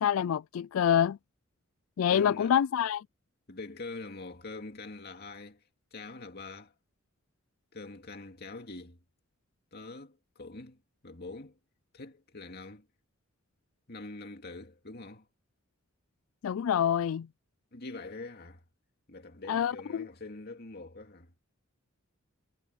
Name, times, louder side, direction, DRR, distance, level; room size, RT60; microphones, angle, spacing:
voice 1, 0.0-1.2 2.0-3.0 16.4-17.3 19.5-20.1, left 9 dB, 75° left, 0.3 m, -26 dB
voice 2, 2.1-2.5 3.5-5.6 5.9-6.7 7.7-9.0 9.7-11.6 11.9-12.9 13.9-15.3 17.7-18.6 19.1-21.4, left 3 dB, 50° left, 2.4 m, -44 dB
head